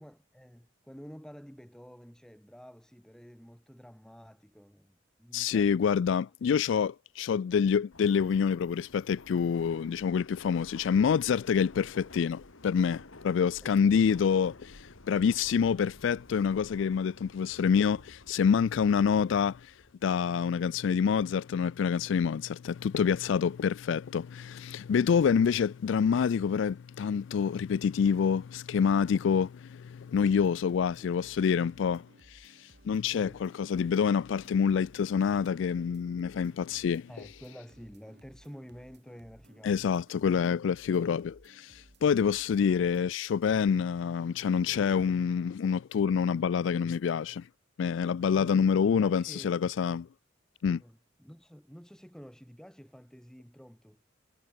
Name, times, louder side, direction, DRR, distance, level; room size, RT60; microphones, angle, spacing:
voice 1, 0.0-5.9 13.6-13.9 31.0-31.1 33.2-33.4 37.1-39.9 48.3-49.5 50.8-54.0, equal, 5° left, 1.8 m, -50 dB
voice 2, 5.3-19.7 20.0-37.1 39.6-47.5 47.8-50.1 50.6-50.8, left 6 dB, 70° left, 0.3 m, -27 dB
Subway metro underground, 7.9-19.9, left 2 dB, 85° left, 1.8 m, -52 dB
sound 1, 30.2-43.1, right 1 dB, 55° right, 5.1 m, -60 dB
head